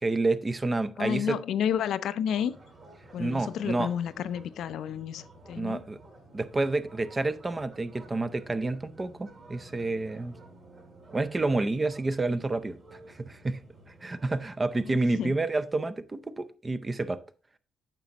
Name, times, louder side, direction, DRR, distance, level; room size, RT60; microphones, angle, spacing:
voice 1, 0.0-1.4 3.2-3.9 5.5-6.0 6.3-10.3 11.1-13.6 13.9-17.2, right 2 dB, 25° right, 0.6 m, -29 dB
voice 2, 1.0-2.5 3.1-5.8 15.2-15.4, left 9 dB, 75° left, 0.4 m, -31 dB
sound 1, 2.2-14.5, right 2 dB, 45° right, 2.4 m, -52 dB
9.0 x 5.9 x 2.8 m
cardioid pair, 90°, 0 cm